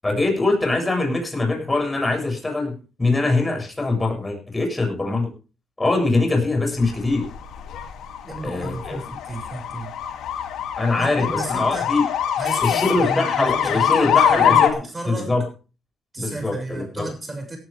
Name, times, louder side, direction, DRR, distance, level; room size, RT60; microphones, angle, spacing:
voice 1, 0.0-5.3 5.8-7.3 8.4-9.0 10.8-12.0 12.6-14.7 15.1-15.4 16.2-17.0, left 2 dB, 15° left, 4 dB, 7.6 m, -23 dB
sound 1, 6.8-14.7, left 9 dB, 80° left, 2.5 m, -23 dB
voice 2, 8.2-10.0 10.9-11.9 12.4-15.3 16.1-17.6, right 2 dB, 20° right, 5 dB, 6.7 m, -33 dB
18.0 x 11.5 x 3.5 m, 0.35 s
cardioid pair, 90°, 0 cm